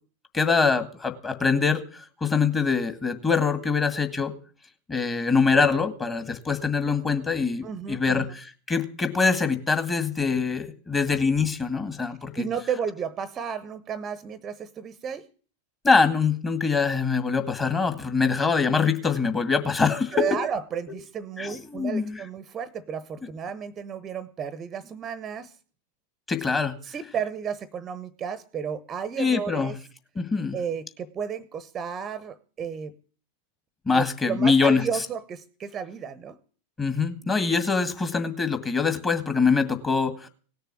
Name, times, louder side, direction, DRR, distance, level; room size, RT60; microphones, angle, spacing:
voice 1, 0.3-4.3 4.9-12.5 15.8-20.3 21.4-22.2 26.3-26.8 29.2-29.8 30.2-30.6 33.9-34.9 36.8-40.3, left 5 dB, 15° left, 8 dB, 2.0 m, -24 dB
voice 2, 7.6-8.3 12.4-15.2 20.1-25.5 26.8-29.7 30.5-32.9 33.9-36.4, right 7 dB, 25° right, 17 dB, 0.9 m, -33 dB
18.0 x 6.9 x 9.8 m, 0.42 s
figure-of-eight pair, 90°, 0 cm